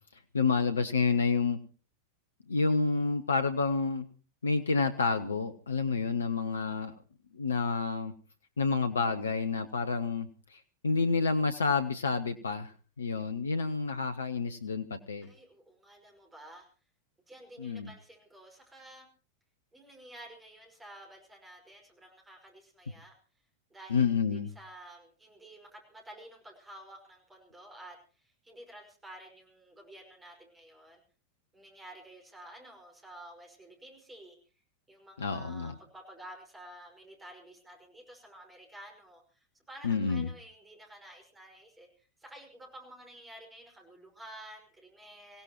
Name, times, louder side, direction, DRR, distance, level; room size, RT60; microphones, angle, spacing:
voice 1, 0.3-1.6 2.5-4.1 4.4-6.9 7.3-8.1 8.6-15.3 17.6-17.9 23.9-24.5 35.2-35.8 39.8-40.3, left 4 dB, 70° left, 10 dB, 0.8 m, -29 dB
voice 2, 15.2-16.7 17.3-19.1 19.7-23.1 23.7-31.0 31.5-34.4 34.9-45.4, right 1 dB, 10° right, 2 dB, 5.4 m, -51 dB
26.0 x 16.5 x 3.0 m, 0.37 s
figure-of-eight pair, 90°, 0 cm